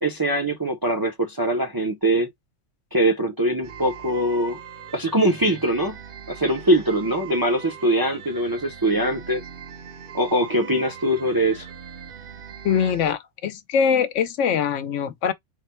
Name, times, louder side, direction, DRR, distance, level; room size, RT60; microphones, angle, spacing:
voice 1, 0.0-2.3 2.9-4.6 4.9-6.0 6.3-9.4 10.1-11.7, right 1 dB, 30° right, 0.4 m, -22 dB
sound 1, 3.6-13.1, right 7 dB, 55° right, 0.8 m, -41 dB
voice 2, 12.6-15.3, left 7 dB, 80° left, 1.0 m, -22 dB
3.9 x 2.1 x 4.3 m
omnidirectional pair, 1.2 m